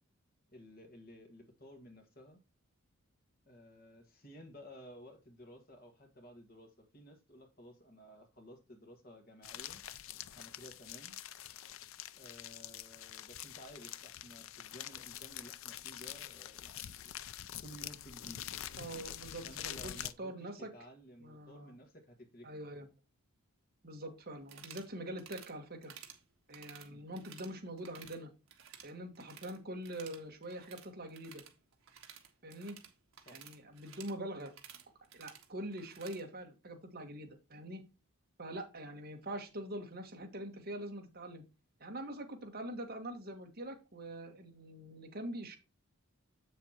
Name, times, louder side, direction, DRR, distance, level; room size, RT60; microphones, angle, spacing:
voice 1, 0.5-2.4 3.5-9.8 10.3-11.2 12.1-17.2 17.6-18.5 19.4-22.7 26.8-27.1 33.3-33.4, equal, 40° left, 1.7 m, -55 dB
sound 1, 9.4-20.1, left 11 dB, 60° left, 0.4 m, -46 dB
voice 2, 18.8-20.7 21.2-21.7 22.4-22.9 23.8-25.9 26.5-28.3 28.8-31.4 32.4-32.8 33.3-34.5 35.1-37.8 38.4-41.4 41.8-45.6, right 1 dB, 45° right, 1.5 m, -44 dB
sound 2, 24.4-24.9 25.2-25.5 25.8-26.2 26.5-27.5 27.8-28.2 28.5-29.6 29.8-36.2, right 8 dB, 65° right, 1.5 m, -54 dB
7.7 x 7.0 x 2.9 m
head